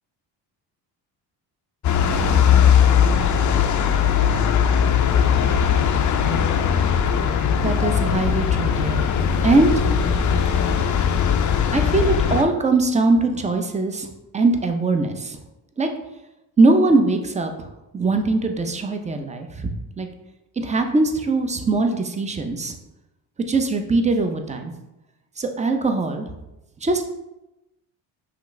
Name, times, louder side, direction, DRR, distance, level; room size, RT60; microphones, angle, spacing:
sound 1, 1.8-12.4, left 7 dB, 45° left, 0.4 m, -19 dB
voice 1, 7.6-9.1 9.4-9.8 11.7-14.1 14.3-15.4 15.8-15.9 16.6-17.5 17.9-19.7 20.0-20.1 20.6-22.7 23.5-24.7 25.4-26.3 26.8-27.0, right 3 dB, 15° right, 5 dB, 0.5 m, -21 dB
5.8 x 2.4 x 3.1 m, 0.95 s
cardioid pair, 85°, 43 cm